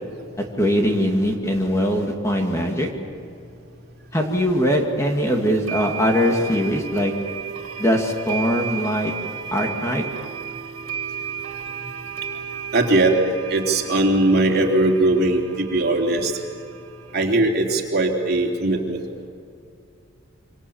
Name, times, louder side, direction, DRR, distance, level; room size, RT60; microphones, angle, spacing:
voice 1, 0.4-2.9 4.1-7.1 7.8-9.1 9.5-10.0, equal, 15° left, 1 dB, 2.4 m, -21 dB
sound 1, 4.7-4.8 5.7-17.2, right 7 dB, 80° right, 2.6 m, -34 dB
voice 2, 12.7-13.2 13.5-16.3 17.1-19.0, right 2 dB, 45° right, 0 dB, 3.5 m, -19 dB
28.5 x 25.5 x 7.3 m, 2.5 s
head